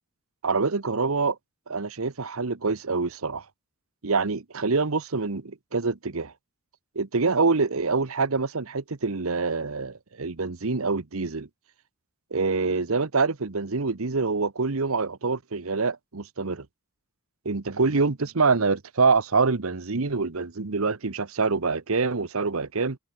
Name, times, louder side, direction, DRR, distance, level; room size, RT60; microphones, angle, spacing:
voice 1, 0.4-1.4 1.7-3.4 4.0-6.3 6.9-11.5 12.3-16.7 17.4-23.0, right 4 dB, 75° right, 1.1 m, -25 dB
open air
head